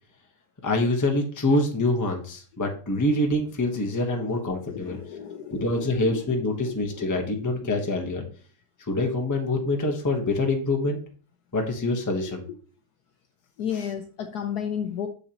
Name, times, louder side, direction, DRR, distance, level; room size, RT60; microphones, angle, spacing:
voice 1, 0.6-5.0 5.5-8.2 8.9-11.0 11.5-12.4 13.7-13.8, left 2 dB, 15° left, 2 dB, 0.8 m, -25 dB
voice 2, 4.7-7.7 13.6-15.1, left 8 dB, 65° left, 6 dB, 1.0 m, -34 dB
6.6 x 6.6 x 2.9 m, 0.40 s
omnidirectional pair, 2.1 m